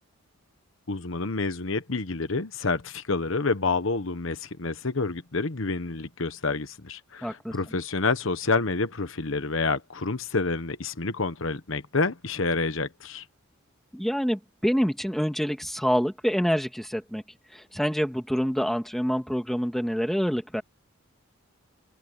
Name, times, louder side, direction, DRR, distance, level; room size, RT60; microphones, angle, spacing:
voice 1, 0.9-13.2, left 3 dB, 65° left, 1.1 m, -28 dB
voice 2, 7.2-7.6 13.9-17.2 17.5-20.6, equal, ahead, 1.9 m, -26 dB
open air
head